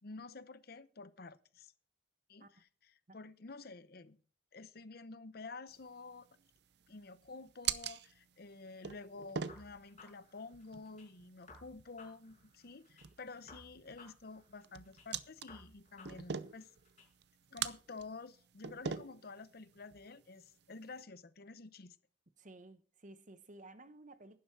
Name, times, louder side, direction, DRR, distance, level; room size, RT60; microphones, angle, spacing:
voice 1, 0.0-1.7 2.3-4.2 4.5-6.3 6.9-16.7 17.5-22.0, left 3 dB, 60° left, 0.8 m, -50 dB
sound 1, 5.7-21.0, right 7 dB, 65° right, 0.7 m, -45 dB
sound 2, 9.5-11.1 11.5-13.1 13.5-15.1 15.5-17.1, left 3 dB, 40° left, 5.7 m, -58 dB
voice 2, 22.4-24.4, right 2 dB, 45° right, 1.0 m, -55 dB
11.5 x 11.0 x 4.6 m
head